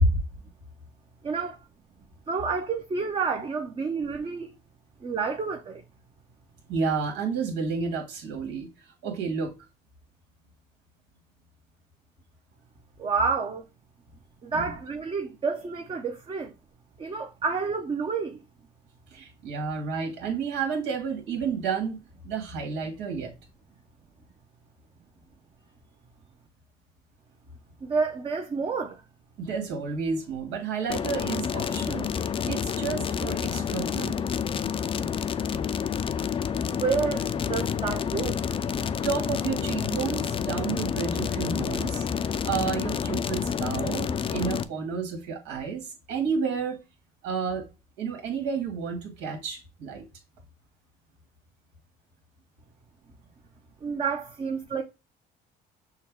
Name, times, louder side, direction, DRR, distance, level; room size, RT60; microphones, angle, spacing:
voice 1, 1.2-1.6 2.3-4.5 5.0-5.8 13.0-13.6 14.4-16.5 17.0-18.4 27.8-29.0 36.7-38.4 53.8-54.8, right 5 dB, 30° right, 0.7 m, -29 dB
voice 2, 6.7-8.7 9.0-9.5 14.5-14.6 19.1-23.3 29.4-34.2 39.0-46.8 47.2-47.7 48.0-50.1, right 5 dB, 90° right, 1.7 m, -31 dB
sound 1, 30.9-44.6, left 7 dB, 30° left, 0.4 m, -29 dB
6.5 x 2.3 x 3.5 m
cardioid pair, 110°, 17 cm